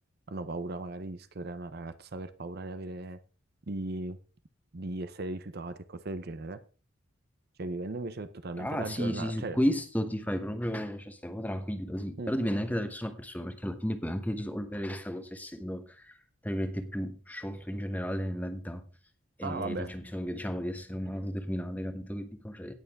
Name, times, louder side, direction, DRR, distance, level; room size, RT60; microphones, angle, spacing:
voice 1, 0.3-3.2 3.7-4.2 4.7-6.6 7.6-9.6 12.2-12.3 19.4-19.9, right 2 dB, 45° right, 13 dB, 0.7 m, -37 dB
voice 2, 8.6-18.8 19.4-22.7, equal, 5° left, 8 dB, 1.0 m, -33 dB
17.5 x 6.9 x 3.5 m, 0.34 s
head